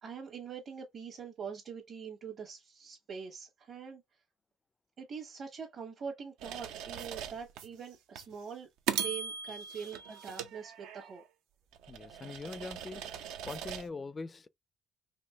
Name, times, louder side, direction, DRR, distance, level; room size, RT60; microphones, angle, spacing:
voice 1, 0.0-4.0 5.0-11.2, right 6 dB, 55° right, 1.2 m, -44 dB
sound 1, 6.4-7.7 8.2-8.3 8.9-11.2 11.7-13.9, right 8 dB, 80° right, 0.5 m, -39 dB
voice 2, 11.9-14.5, left 3 dB, 30° left, 0.3 m, -43 dB
4.3 x 2.8 x 2.2 m
supercardioid pair, 75°, 0 cm